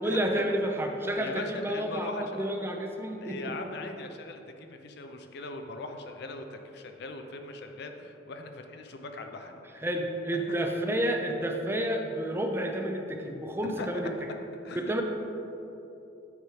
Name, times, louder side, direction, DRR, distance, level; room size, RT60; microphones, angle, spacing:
voice 1, 0.0-2.1 2.3-3.5 9.8-14.1 14.9-15.0, right 1 dB, 15° right, 3 dB, 0.4 m, -30 dB
voice 2, 1.2-2.5 3.2-9.8 13.8-13.9 14.6-14.9, left 2 dB, 60° left, 5 dB, 0.5 m, -40 dB
9.1 x 3.1 x 5.0 m, 2.9 s
head